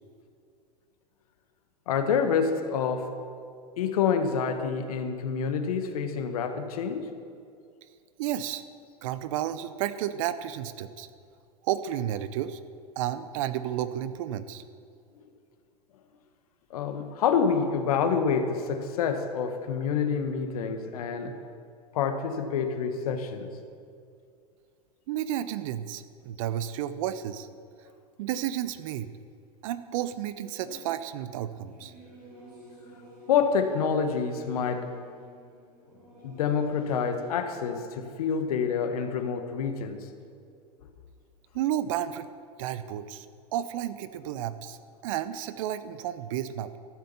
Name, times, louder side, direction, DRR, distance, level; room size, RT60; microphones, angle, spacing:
voice 1, 1.9-3.1 3.8-7.1 16.7-21.4 21.9-23.5 33.3-34.9 36.2-40.1, left 6 dB, 65° left, 8 dB, 1.3 m, -27 dB
voice 2, 8.2-8.6 9.0-11.1 11.6-12.6 13.0-14.6 25.1-27.5 28.2-29.1 29.6-31.9 41.5-42.3 42.6-43.3 43.5-44.8 45.0-46.8, right 11 dB, 55° right, 13 dB, 0.7 m, -32 dB
Singing / Musical instrument, 31.6-37.8, equal, 85° right, 4.0 m, -50 dB
13.5 x 7.7 x 7.0 m, 2.3 s
figure-of-eight pair, 90°, 20 cm